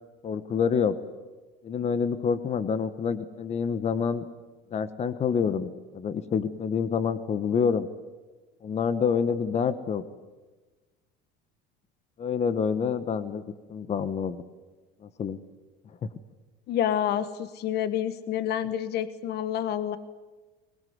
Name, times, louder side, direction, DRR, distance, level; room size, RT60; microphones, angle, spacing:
voice 1, 0.2-0.9 1.6-4.2 4.7-7.9 8.6-10.0 12.2-13.4 13.7-14.4 15.2-15.4, left 6 dB, 30° left, 12 dB, 1.2 m, -27 dB
voice 2, 16.7-20.0, left 10 dB, 50° left, 13 dB, 1.3 m, -28 dB
23.0 x 21.0 x 9.5 m, 1.2 s
cardioid pair, 125°, 21 cm